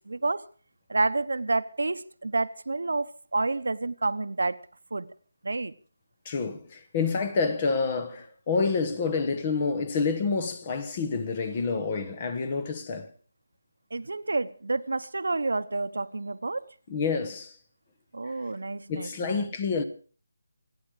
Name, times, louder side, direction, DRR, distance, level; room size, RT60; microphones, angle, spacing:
voice 1, 0.1-0.4 0.9-4.6 4.9-5.1 5.4-5.7 13.9-16.7 18.1-19.4, right 3 dB, 75° right, 1.1 m, -29 dB
voice 2, 6.2-13.1 16.9-17.6 18.3-18.4 18.9-19.8, left 4 dB, 20° left, 1.1 m, -28 dB
28.0 x 10.0 x 4.9 m
figure-of-eight pair, 180°, 0 cm